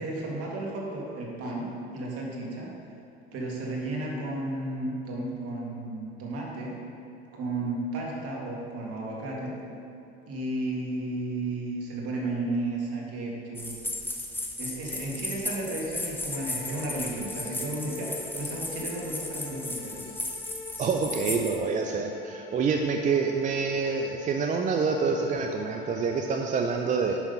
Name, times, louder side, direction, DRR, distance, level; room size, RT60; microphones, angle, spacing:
voice 1, 0.0-2.7 3.3-6.8 7.3-9.6 10.3-13.7 14.6-20.1, right 2 dB, 50° right, -2 dB, 2.0 m, -33 dB
sound 1, 13.5-21.6, left 2 dB, 5° left, 0.8 m, -35 dB
sound 2, 16.3-26.4, left 4 dB, 55° left, 0.8 m, -45 dB
voice 2, 20.8-27.2, right 5 dB, 25° right, 3 dB, 0.5 m, -27 dB
6.1 x 5.7 x 5.5 m, 2.6 s
hypercardioid pair, 85°, 30 cm